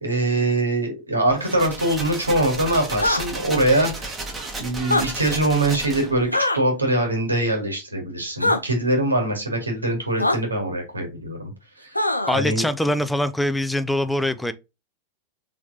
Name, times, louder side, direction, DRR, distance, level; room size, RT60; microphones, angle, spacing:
voice 1, 0.0-4.2 4.6-11.5 11.8-12.0 12.3-12.6, right 1 dB, 80° right, 1.7 m, -23 dB
sound 1, 1.3-6.3, right 3 dB, 15° right, 1.5 m, -33 dB
sound 2, 2.9-3.2 4.8-5.0 6.3-6.6 8.4-8.6 10.2-10.4 11.9-12.4, left 2 dB, 85° left, 0.6 m, -21 dB
voice 2, 12.3-14.5, left 1 dB, 5° left, 0.4 m, -23 dB
4.4 x 3.6 x 2.7 m
figure-of-eight pair, 90°, 0 cm